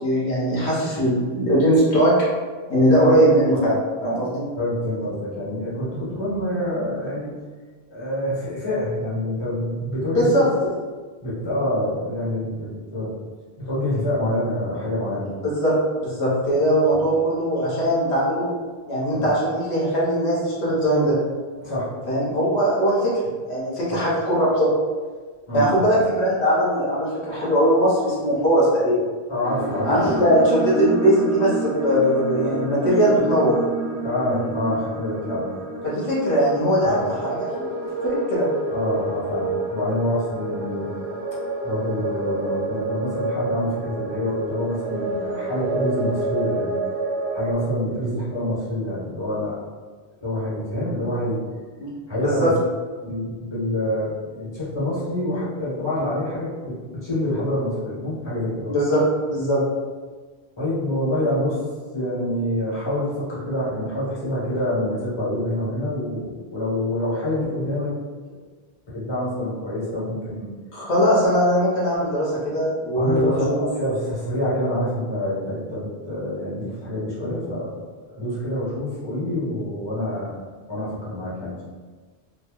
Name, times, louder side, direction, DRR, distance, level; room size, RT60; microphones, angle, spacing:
voice 1, 0.0-2.1 2.7-4.5 10.1-10.5 15.4-15.7 16.0-18.5 18.9-21.2 22.1-23.1 23.5-24.7 25.5-29.0 29.8-33.6 35.8-38.5 51.8-51.9 52.2-52.5 58.7-59.6 70.7-73.6, equal, 90° left, -7 dB, 1.3 m, -20 dB
voice 2, 4.6-7.3 7.9-10.4 11.2-13.1 13.6-15.3 16.9-17.0 19.1-19.3 21.6-21.9 23.9-24.0 25.5-26.0 29.3-30.2 34.0-35.5 36.8-37.1 38.7-40.9 41.6-46.8 47.3-49.6 50.2-51.4 52.1-52.6 53.0-56.8 57.0-58.7 60.6-61.6 61.9-67.9 68.9-70.5 72.9-77.7 78.0-80.4 80.7-81.6, left 1 dB, 25° left, -8 dB, 1.1 m, -26 dB
sound 1, 29.4-47.5, right 2 dB, 75° right, 0.8 m, -28 dB
3.6 x 2.2 x 3.0 m, 1.5 s
omnidirectional pair, 1.1 m